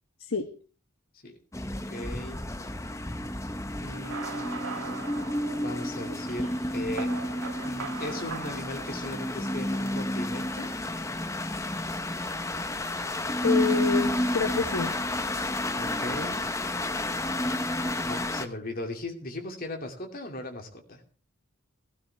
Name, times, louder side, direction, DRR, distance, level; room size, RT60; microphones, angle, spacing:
sound 1, 1.5-18.5, left 1 dB, 15° left, 0.8 m, -31 dB
voice 1, 1.9-2.4 3.8-5.0 5.5-7.2 7.6-10.7 15.8-16.4 18.1-21.0, left 1 dB, 45° left, 3 dB, 2.5 m, -38 dB
sound 2, 3.9-9.7, right 4 dB, 90° right, 2.1 m, -41 dB
voice 2, 13.4-14.9, left 6 dB, 75° left, 7 dB, 1.0 m, -28 dB
16.5 x 15.0 x 3.4 m, 0.39 s
head